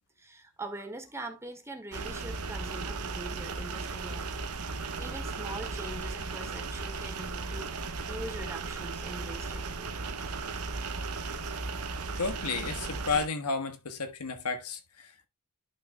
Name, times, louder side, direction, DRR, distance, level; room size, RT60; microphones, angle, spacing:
voice 1, 0.2-4.3 5.0-9.9, right 2 dB, 10° right, 1.7 m, -43 dB
sound 1, 1.9-13.3, right 4 dB, 80° right, 1.1 m, -36 dB
voice 2, 12.2-15.3, left 4 dB, 85° left, 1.3 m, -32 dB
11.0 x 6.5 x 2.2 m
head